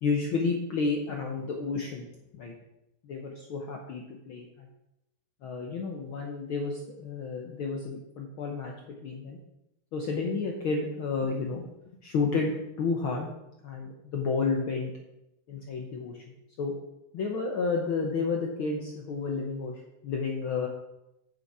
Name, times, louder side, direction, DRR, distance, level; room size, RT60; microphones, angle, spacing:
voice 1, 0.0-2.1 2.3-2.5 3.0-4.7 5.4-8.7 9.0-9.4 9.9-11.6 12.0-13.3 13.6-14.9 15.5-16.2 16.6-16.7 17.1-20.7, left 4 dB, 65° left, 1 dB, 1.3 m, -31 dB
9.2 x 7.0 x 4.7 m, 0.88 s
omnidirectional pair, 3.4 m